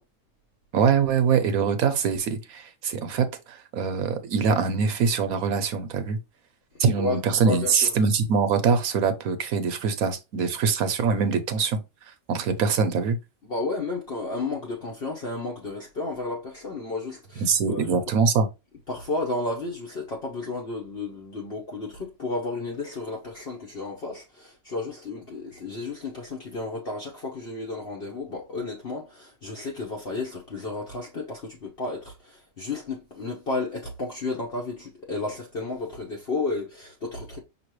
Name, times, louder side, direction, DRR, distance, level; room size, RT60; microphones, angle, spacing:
voice 1, 0.7-6.2 6.8-11.8 12.3-13.2 17.4-18.5, right 5 dB, 80° right, 1.2 m, -23 dB
voice 2, 7.0-7.9 13.5-18.0 18.9-37.4, left 3 dB, 45° left, 1.1 m, -32 dB
5.6 x 3.0 x 3.0 m
omnidirectional pair, 1.5 m